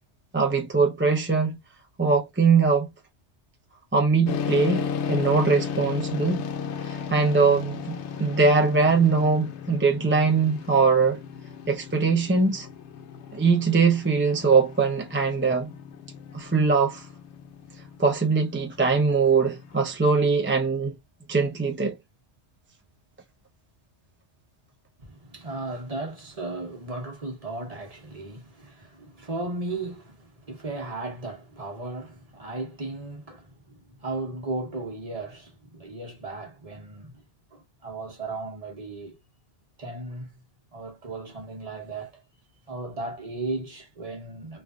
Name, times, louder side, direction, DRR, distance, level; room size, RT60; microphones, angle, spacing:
voice 1, 0.3-1.6 2.0-2.9 3.9-6.4 6.9-7.9 8.2-11.2 11.7-12.7 13.3-15.7 16.3-17.0 18.0-20.9 21.3-22.0, right 4 dB, 15° right, 0.5 m, -22 dB
sound 1, 4.3-19.7, left 6 dB, 80° left, 0.9 m, -35 dB
voice 2, 25.0-37.2 37.5-39.2 39.8-40.4 40.7-42.2 42.7-44.6, right 2 dB, 35° right, 1.0 m, -36 dB
3.3 x 2.5 x 2.4 m
omnidirectional pair, 1.2 m